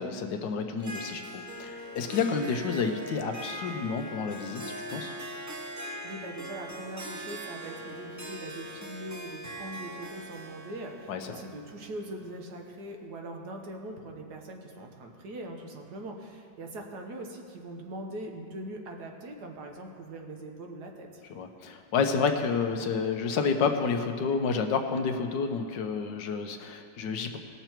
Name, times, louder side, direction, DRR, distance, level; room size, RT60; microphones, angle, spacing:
voice 1, 0.0-5.1 11.1-11.4 21.3-27.4, left 5 dB, 75° left, 6 dB, 1.4 m, -30 dB
Harp, 0.8-12.6, equal, 20° right, 0.5 m, -41 dB
voice 2, 6.0-21.2, right 1 dB, 65° right, 2 dB, 1.6 m, -41 dB
18.5 x 6.9 x 4.5 m, 2.2 s
omnidirectional pair, 1.9 m